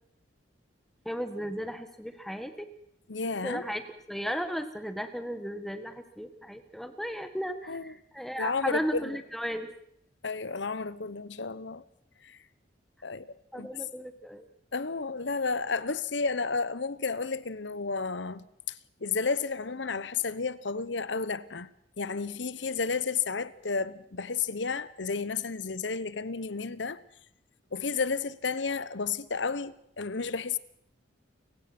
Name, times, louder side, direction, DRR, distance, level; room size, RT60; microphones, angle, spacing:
voice 1, 1.0-2.7 3.4-3.8 4.1-9.7 13.5-14.5, equal, ahead, 1.5 m, -35 dB
voice 2, 3.1-3.6 7.7-7.9 8.4-9.2 10.2-11.8 12.2-12.4 13.0-13.7 14.7-18.5 19.0-21.7 22.0-27.0 27.7-30.6, left 4 dB, 75° left, 1.0 m, -32 dB
29.5 x 16.5 x 6.1 m
head